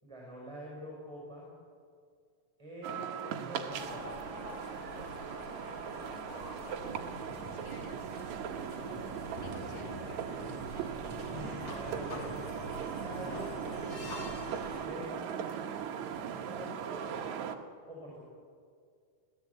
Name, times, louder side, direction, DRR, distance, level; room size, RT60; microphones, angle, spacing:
voice 1, 0.0-1.5 2.6-4.2 9.6-9.7 10.7-10.9 11.3-13.6 14.7-15.4 16.4-17.1 17.9-18.2, right 1 dB, 5° right, -4 dB, 5.0 m, -45 dB
sound 1, 2.8-17.6, right 8 dB, 80° right, 1.6 m, -39 dB
sound 2, 3.7-14.9, left 1 dB, 40° left, 3.7 m, -45 dB
voice 2, 6.1-9.0 9.3-10.2 15.1-15.7, left 7 dB, 80° left, 4 dB, 4.2 m, -56 dB
sound 3, 9.3-17.4, right 3 dB, 50° right, 2.4 m, -52 dB
25.0 x 16.5 x 8.4 m, 2.2 s
omnidirectional pair, 5.2 m